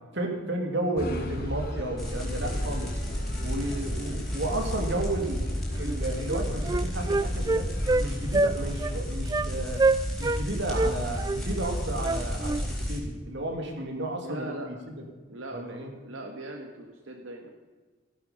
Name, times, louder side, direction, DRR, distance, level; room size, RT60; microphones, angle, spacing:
voice 1, 0.1-3.0 3.4-7.7 8.0-9.8 10.2-15.0 15.5-15.9, right 1 dB, 60° right, 3 dB, 2.7 m, -33 dB
sound 1, 1.0-9.0, left 1 dB, 50° left, 2.4 m, -38 dB
sound 2, 2.0-13.0, equal, ahead, 3.9 m, -32 dB
Wind instrument woodwind instrument, 5.8-6.0 6.3-8.1 8.3-8.5 8.8-9.0 9.3-9.5 9.8-10.4 10.7-12.6, right 3 dB, 20° right, 0.3 m, -26 dB
voice 2, 14.2-14.7 15.3-15.8 16.0-17.5, right 1 dB, 85° right, 3 dB, 1.6 m, -39 dB
15.5 x 11.5 x 5.3 m, 1.3 s
head